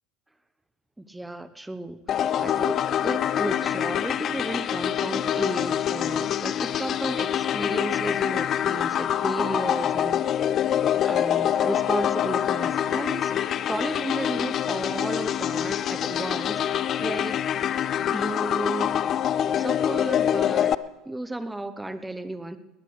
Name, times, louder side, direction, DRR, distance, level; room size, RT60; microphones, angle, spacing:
voice 1, 1.0-2.0 2.4-10.4 11.0-13.3 13.7-17.4 18.1-19.0 19.5-20.7 21.0-22.6, right 1 dB, 10° right, 12 dB, 1.0 m, -33 dB
sound 1, 2.1-20.7, left 10 dB, 45° left, 0.5 m, -25 dB
20.5 x 18.0 x 3.4 m, 1.2 s
hypercardioid pair, 75°, 0 cm